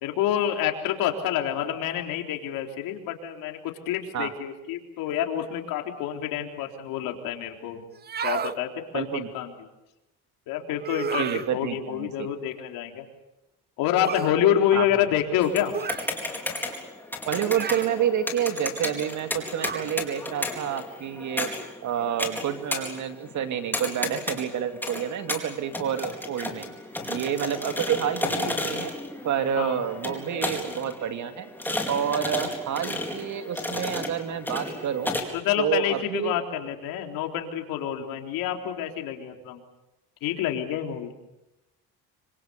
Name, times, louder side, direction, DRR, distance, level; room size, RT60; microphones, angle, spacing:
voice 1, 0.0-7.9 8.2-9.5 10.5-13.1 13.8-15.8 29.6-29.8 35.3-39.6 40.2-41.1, left 10 dB, 80° left, 4 dB, 3.8 m, -27 dB
sound 1, 7.9-8.6 10.8-11.5 14.0-14.3 15.7-16.1 17.5-17.9 19.6-19.9, right 7 dB, 30° right, 0.8 m, -32 dB
voice 2, 8.9-9.3 11.2-12.3 14.7-14.8 17.3-21.5 21.8-26.7 27.1-28.9 29.2-31.5 31.9-35.1 35.6-36.4, right 9 dB, 55° right, 8 dB, 2.5 m, -29 dB
sound 2, 15.4-35.2, left 2 dB, 5° left, 4.5 m, -33 dB
26.0 x 26.0 x 7.0 m, 0.93 s
cardioid pair, 115°, 34 cm